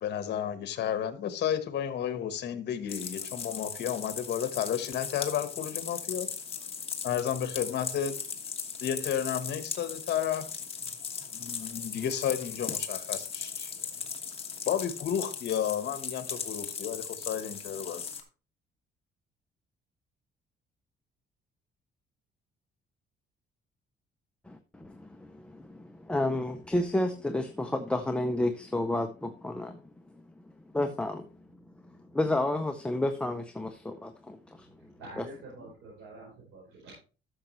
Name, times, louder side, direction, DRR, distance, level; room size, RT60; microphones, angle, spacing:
voice 1, 0.0-6.3 7.0-8.2 8.8-10.5 11.3-13.7 14.6-18.0, left 9 dB, 60° left, 1.2 m, -32 dB
sound 1, 2.9-18.2, left 6 dB, 30° left, 1.4 m, -38 dB
voice 2, 24.5-29.8 30.7-31.3 32.1-35.3 35.6-35.7, left 1 dB, 5° left, 0.6 m, -31 dB
voice 3, 35.0-36.9, right 2 dB, 85° right, 4.6 m, -47 dB
13.0 x 6.5 x 3.1 m
cardioid pair, 150°, 19 cm